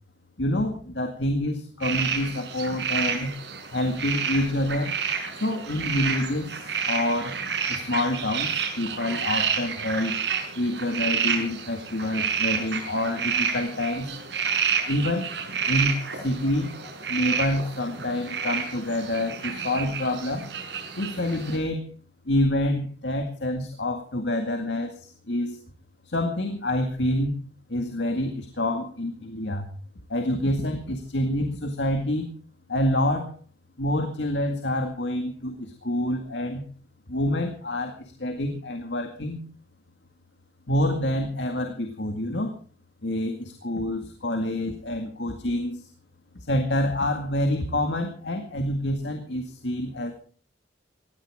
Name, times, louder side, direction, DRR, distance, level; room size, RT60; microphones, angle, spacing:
voice 1, 0.4-3.3 3.7-4.9 5.3-7.4 7.7-10.2 10.6-14.1 14.9-15.3 15.7-16.7 17.1-20.5 21.0-21.9 22.3-25.0 25.3-25.6 26.0-27.3 27.7-29.7 30.1-32.3 32.7-33.4 33.8-36.6 37.1-39.4 40.7-42.5 43.0-45.9 46.4-50.1, left 1 dB, 80° left, 5 dB, 2.0 m, -27 dB
sound 1, 1.8-21.6, right 6 dB, 80° right, 5.6 m, -30 dB
19.0 x 16.0 x 3.7 m, 0.41 s
head